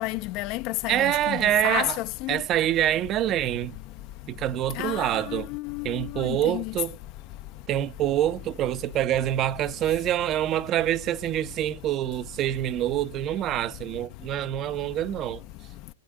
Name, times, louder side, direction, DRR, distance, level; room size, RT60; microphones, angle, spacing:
voice 1, 0.0-2.4 4.8-6.7, left 19 dB, 45° left, 0.7 m, -31 dB
voice 2, 0.9-2.0 2.3-3.7 4.3-5.5 5.8-7.0 7.7-15.4, right 12 dB, 35° right, 0.9 m, -26 dB
11.5 x 9.8 x 9.4 m
figure-of-eight pair, 100°, 0 cm